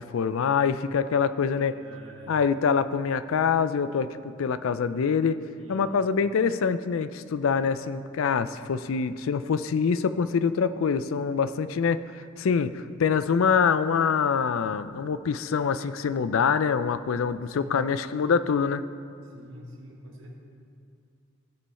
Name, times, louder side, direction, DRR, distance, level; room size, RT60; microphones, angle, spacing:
voice 1, 0.0-1.7 2.3-4.1 4.4-5.4 5.7-18.8, left 6 dB, 80° left, 13 dB, 0.4 m, -25 dB
voice 2, 1.7-2.4 5.5-5.9 17.4-17.7 19.2-20.4, equal, 75° right, -1 dB, 1.6 m, -46 dB
16.0 x 5.5 x 4.2 m, 2.5 s
head